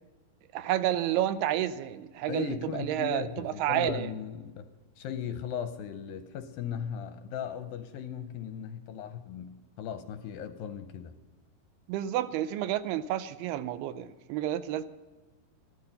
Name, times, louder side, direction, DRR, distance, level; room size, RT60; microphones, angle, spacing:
voice 1, 0.5-4.1 11.9-14.8, right 12 dB, 85° right, 2.6 m, -30 dB
voice 2, 2.3-4.7 5.0-11.1, left 8 dB, 80° left, 2.3 m, -37 dB
14.0 x 12.5 x 5.5 m
omnidirectional pair, 4.6 m